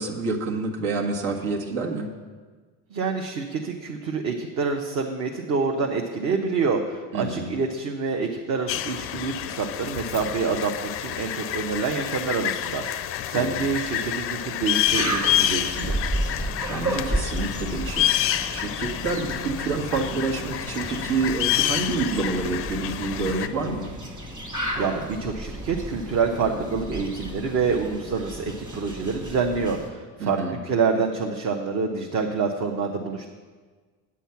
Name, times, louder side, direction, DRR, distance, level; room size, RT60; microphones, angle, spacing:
voice 1, 0.0-2.1 7.1-7.5 13.3-13.6 16.6-18.1 18.5-23.9 30.2-30.5, right 3 dB, 75° right, 1 dB, 1.8 m, -28 dB
voice 2, 2.9-16.0 24.7-33.3, right 5 dB, 40° right, 2 dB, 0.9 m, -27 dB
sound 1, 8.7-23.5, left 12 dB, 35° left, 0.4 m, -28 dB
sound 2, 14.8-29.9, right 1 dB, 10° right, 1.5 m, -33 dB
9.0 x 8.4 x 5.8 m, 1.4 s
supercardioid pair, 135°, 40 cm